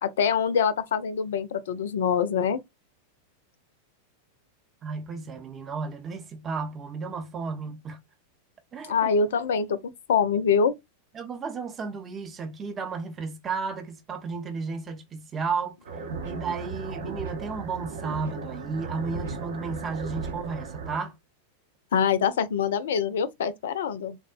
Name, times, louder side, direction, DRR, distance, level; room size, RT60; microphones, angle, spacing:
voice 1, 0.0-2.6 8.8-10.7 21.9-24.2, left 6 dB, 60° left, 0.4 m, -25 dB
voice 2, 4.8-8.0 8.7-9.1 11.1-15.8 16.2-21.2, right 4 dB, 25° right, 0.6 m, -33 dB
sound 1, 15.8-21.0, right 4 dB, 65° right, 0.6 m, -36 dB
3.5 x 2.0 x 2.4 m
figure-of-eight pair, 90°, 0 cm